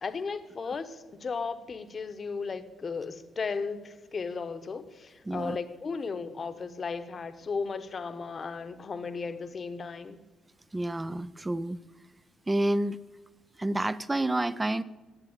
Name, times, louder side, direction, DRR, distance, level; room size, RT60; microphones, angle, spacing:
voice 1, 0.0-10.2, left 5 dB, 40° left, 10 dB, 1.0 m, -35 dB
voice 2, 5.3-5.6 10.7-11.8 12.5-13.0 13.6-14.8, right 1 dB, 15° right, 16 dB, 0.4 m, -29 dB
10.5 x 7.7 x 8.9 m, 1.2 s
cardioid pair, 90°, 0 cm